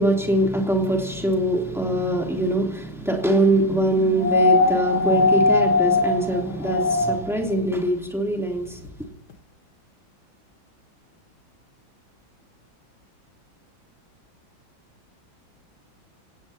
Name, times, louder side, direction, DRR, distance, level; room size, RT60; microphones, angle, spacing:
voice 1, 0.0-8.8, right 1 dB, ahead, 3.1 m, -23 dB
sound 1, 4.2-7.4 8.8-8.9, left 3 dB, 75° left, 2.1 m, -20 dB
27.0 x 17.5 x 2.9 m
omnidirectional pair, 2.2 m